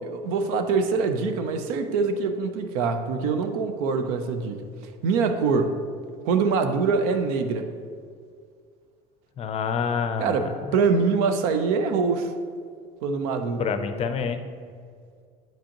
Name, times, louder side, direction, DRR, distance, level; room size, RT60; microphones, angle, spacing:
voice 1, 0.0-4.6 5.0-5.7 6.2-7.7 10.2-12.3 13.0-13.7, right 4 dB, 85° right, 8 dB, 0.6 m, -24 dB
voice 2, 9.4-10.5 13.6-14.5, left 6 dB, 35° left, 9 dB, 0.5 m, -27 dB
8.9 x 5.1 x 2.9 m, 2.1 s
supercardioid pair, 110°, 18 cm